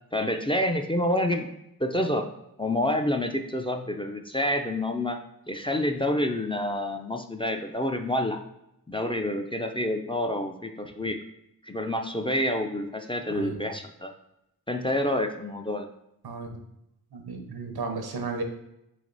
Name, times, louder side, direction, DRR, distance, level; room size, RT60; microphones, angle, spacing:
voice 1, 0.1-1.5 1.8-2.3 2.6-5.2 5.5-8.4 8.9-11.2 11.6-14.1 14.7-15.9, left 1 dB, 15° left, 4 dB, 0.3 m, -28 dB
voice 2, 13.3-13.6 16.2-16.6 17.1-18.4, right 3 dB, 80° right, 4 dB, 0.7 m, -34 dB
3.3 x 3.2 x 3.9 m, 0.83 s
cardioid pair, 40°, 37 cm